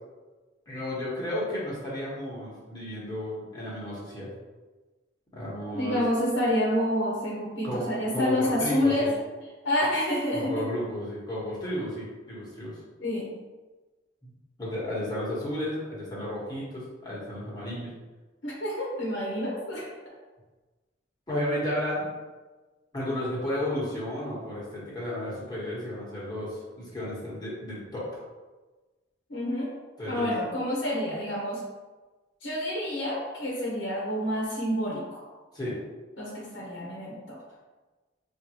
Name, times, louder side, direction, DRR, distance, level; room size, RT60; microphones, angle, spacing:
voice 1, 0.7-4.3 5.3-6.0 7.6-9.1 10.3-12.8 14.2-14.3 14.6-17.9 21.3-22.1 22.9-28.1 30.0-30.4 35.5-35.8, left 1 dB, 20° left, -7 dB, 1.1 m, -33 dB
voice 2, 5.7-9.1 9.6-10.6 13.0-13.3 18.4-19.9 29.3-29.7 30.1-31.6 32.4-35.2 36.2-37.4, left 1 dB, 85° left, -4 dB, 0.9 m, -28 dB
5.3 x 2.6 x 3.0 m, 1.3 s
head